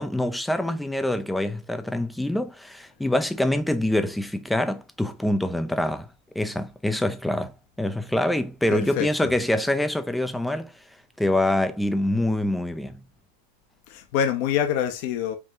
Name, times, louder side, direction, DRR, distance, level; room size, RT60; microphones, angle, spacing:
voice 1, 0.0-6.1 6.3-10.7 11.2-13.0, left 1 dB, 5° left, 0.5 m, -25 dB
voice 2, 8.7-9.3 13.9-15.4, left 9 dB, 50° left, 0.8 m, -26 dB
4.8 x 2.8 x 3.6 m
supercardioid pair, 145°, 0 cm